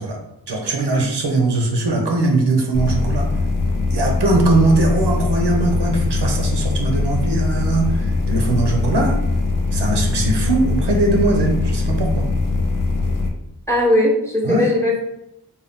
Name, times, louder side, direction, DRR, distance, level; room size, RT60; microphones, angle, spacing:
voice 1, 0.0-3.3 3.9-9.2 9.7-12.3 14.4-14.7, right 2 dB, 80° right, 2 dB, 0.7 m, -20 dB
sound 1, 2.7-13.3, left 3 dB, 55° left, 0.5 m, -21 dB
voice 2, 13.7-15.0, left 1 dB, 5° left, -2 dB, 0.8 m, -18 dB
2.6 x 2.2 x 3.4 m, 0.86 s
wide cardioid pair, 45°, 40 cm